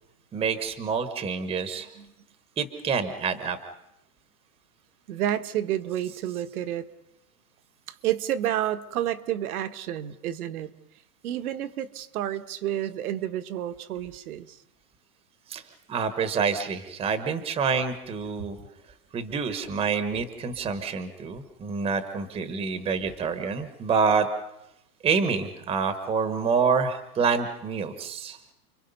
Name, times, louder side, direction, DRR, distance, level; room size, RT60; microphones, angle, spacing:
voice 1, 0.3-1.9 2.6-3.6 15.5-15.6 15.9-18.6 19.1-24.3 25.0-28.4, right 5 dB, 15° right, 10 dB, 1.1 m, -27 dB
voice 2, 5.1-6.9 7.9-10.7 11.2-14.6, right 11 dB, 70° right, 11 dB, 1.5 m, -30 dB
29.5 x 23.0 x 5.5 m, 0.86 s
supercardioid pair, 160°, 46 cm